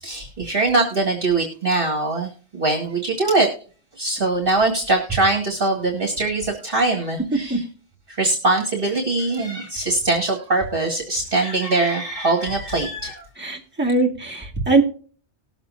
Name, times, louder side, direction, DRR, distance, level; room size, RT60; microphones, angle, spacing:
voice 1, 0.0-3.5 4.0-7.6 8.1-13.2, right 2 dB, 50° right, 1 dB, 2.0 m, -22 dB
voice 2, 13.4-14.8, right 3 dB, 10° right, -3 dB, 2.3 m, -20 dB
19.5 x 7.3 x 2.7 m, 0.41 s
omnidirectional pair, 1.2 m